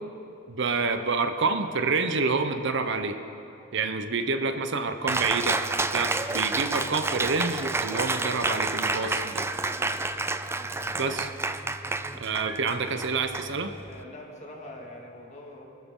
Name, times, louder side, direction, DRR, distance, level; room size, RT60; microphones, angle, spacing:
voice 1, 0.5-3.2 3.7-5.6 5.9-9.5 10.9-11.3 12.1-13.7, right 4 dB, 65° right, 8 dB, 0.8 m, -28 dB
Cheering, 5.1-14.0, right 3 dB, 15° right, 0.4 m, -30 dB
voice 2, 13.9-15.6, left 1 dB, 35° left, -1 dB, 2.2 m, -43 dB
24.5 x 13.0 x 3.8 m, 2.9 s
head